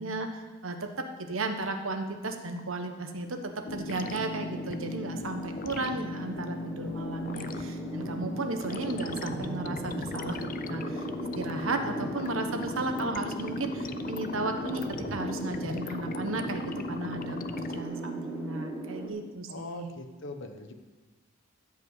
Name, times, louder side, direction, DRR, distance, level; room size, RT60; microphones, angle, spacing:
voice 1, 0.0-14.8 15.1-19.9, right 2 dB, 75° right, 6 dB, 1.3 m, -34 dB
sound 1, 3.2-19.1, right 2 dB, 10° right, 1.7 m, -39 dB
sound 2, 3.7-17.8, left 3 dB, 40° left, 0.5 m, -38 dB
voice 2, 19.5-20.7, left 2 dB, 60° left, 6 dB, 1.3 m, -41 dB
14.5 x 5.4 x 8.3 m, 1.3 s
head